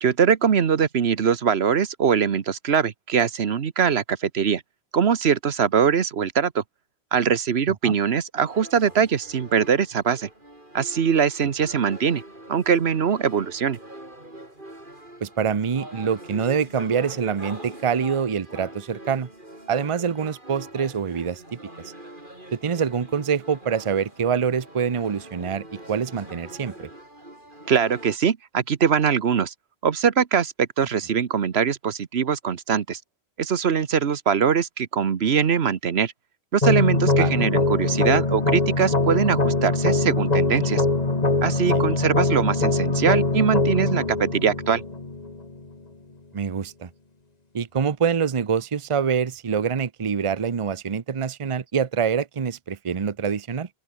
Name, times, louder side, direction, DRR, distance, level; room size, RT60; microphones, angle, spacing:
voice 1, 0.0-4.6 4.9-6.6 7.1-10.3 10.7-12.2 12.5-13.8 27.7-29.5 29.8-33.0 33.4-36.1 36.5-40.8 41.4-44.8, right 7 dB, 85° right, 1.3 m, -22 dB
sound 1, 8.4-28.2, right 1 dB, 55° right, 7.2 m, -43 dB
voice 2, 15.2-19.3 19.7-21.4 22.5-26.9 37.2-37.5 46.3-46.9 47.5-53.7, right 6 dB, 35° right, 0.7 m, -25 dB
sound 2, 36.6-45.6, left 3 dB, 40° left, 2.2 m, -22 dB
open air
omnidirectional pair, 1.0 m